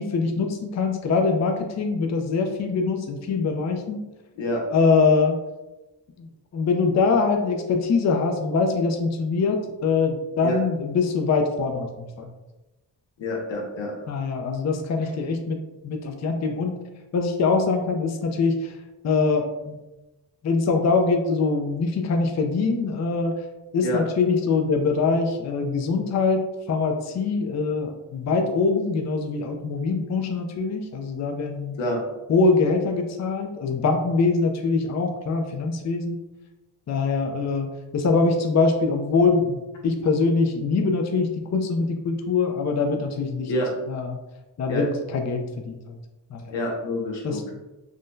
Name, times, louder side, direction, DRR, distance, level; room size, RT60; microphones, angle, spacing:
voice 1, 0.0-4.0 4.7-5.3 6.2-12.3 14.1-16.8 17.1-18.7 19.0-19.8 20.4-23.3 23.7-26.4 26.7-31.8 32.3-36.2 36.9-37.7 37.9-43.5 43.9-44.2 44.6-45.9 46.3-46.5 47.2-47.4, left 4 dB, 40° left, 4 dB, 0.5 m, -23 dB
voice 2, 13.2-13.9 15.0-15.1 23.8-24.0 31.8-32.0 43.5-43.7 44.7-44.8 46.5-47.5, left 1 dB, 90° left, -1 dB, 0.8 m, -27 dB
3.7 x 2.2 x 2.6 m, 1.0 s
cardioid pair, 55°, 44 cm